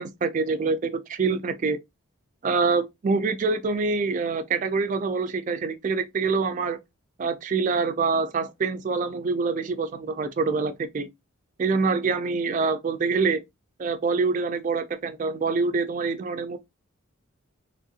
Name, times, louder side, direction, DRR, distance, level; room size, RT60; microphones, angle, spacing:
voice 1, 0.0-1.8 2.4-6.8 7.2-11.1 11.6-13.4 13.8-16.6, right 4 dB, 35° right, 0.3 m, -25 dB
3.0 x 2.7 x 2.3 m
head